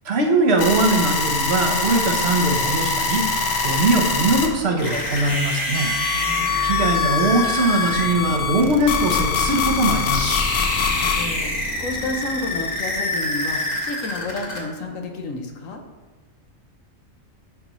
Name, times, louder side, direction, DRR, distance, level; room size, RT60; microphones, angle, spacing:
voice 1, 0.0-3.2 3.6-5.9 6.6-10.5, right 2 dB, 55° right, 1 dB, 1.0 m, -21 dB
sound 1, 0.6-4.5 5.7-11.3, left 5 dB, 60° left, 0.9 m, -23 dB
sound 2, 4.8-14.6, left 1 dB, 35° left, 1.2 m, -27 dB
voice 2, 6.1-6.7 10.7-15.8, left 2 dB, 80° left, 3 dB, 1.3 m, -31 dB
11.0 x 4.0 x 3.0 m, 1.3 s
omnidirectional pair, 1.4 m